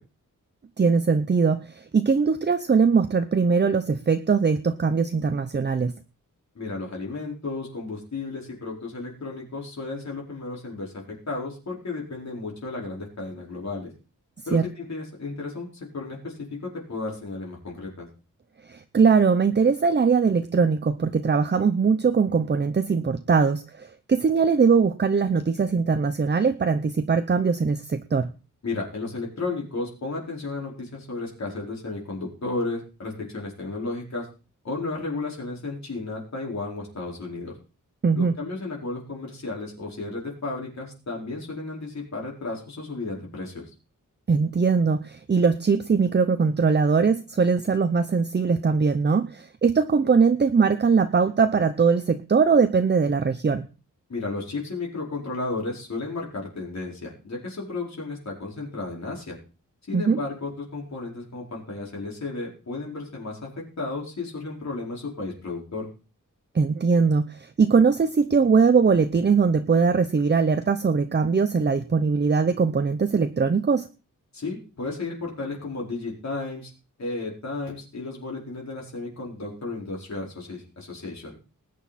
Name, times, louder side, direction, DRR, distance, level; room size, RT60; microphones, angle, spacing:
voice 1, 0.8-5.9 14.5-14.7 18.7-28.3 38.0-38.3 44.3-53.7 59.9-60.2 66.5-73.9, right 5 dB, 35° right, 10 dB, 0.7 m, -21 dB
voice 2, 6.5-13.9 14.5-18.1 28.6-34.3 34.6-37.5 38.1-43.6 54.1-59.4 59.9-65.9 74.3-76.7 77.0-81.3, left 3 dB, 55° left, -2 dB, 4.8 m, -33 dB
19.5 x 9.3 x 4.2 m, 0.34 s
wide cardioid pair, 170°, 32 cm